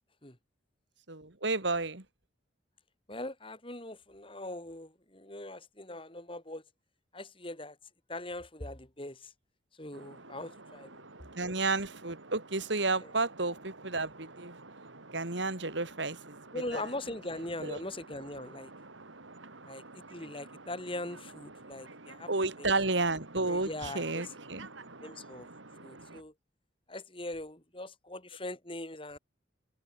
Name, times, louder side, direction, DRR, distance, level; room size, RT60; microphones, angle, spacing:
voice 1, 1.1-2.0 11.3-14.6 15.1-16.4 16.7-16.8 17.6-17.8 22.3-24.7, right 3 dB, 70° right, 2.8 m, -31 dB
voice 2, 3.1-6.6 7.1-7.8 8.1-9.3 9.7-10.9 13.0-13.1 16.5-18.7 19.7-22.3 22.6-22.7 23.5-24.3 25.0-25.5 25.8-26.3 26.9-29.2, left 1 dB, 25° left, 4.0 m, -41 dB
sound 1, 9.9-26.2, right 3 dB, 85° right, 3.4 m, -50 dB
head